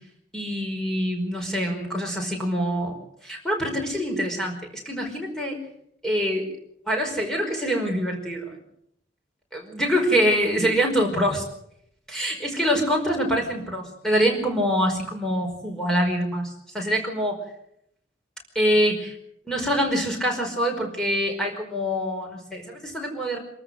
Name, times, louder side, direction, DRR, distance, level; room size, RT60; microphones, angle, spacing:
voice 1, 0.3-2.9 3.2-4.6 4.8-5.6 6.0-6.5 6.9-8.5 9.5-11.4 12.1-17.4 18.5-19.1 19.5-23.4, equal, 5° left, 1 dB, 5.0 m, -25 dB
27.0 x 14.0 x 7.9 m, 0.74 s
head